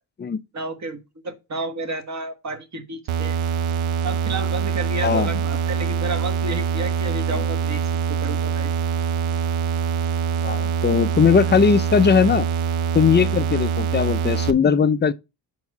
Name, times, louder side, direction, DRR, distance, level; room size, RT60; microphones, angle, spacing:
voice 1, 0.5-3.4 4.0-7.8 8.1-8.7, right 2 dB, 35° right, 1.4 m, -31 dB
sound 1, 3.1-14.5, right 6 dB, 75° right, 0.7 m, -24 dB
voice 2, 10.4-12.5 12.9-15.1, left 6 dB, 25° left, 0.4 m, -19 dB
4.8 x 4.6 x 5.5 m
cardioid pair, 90°, 49 cm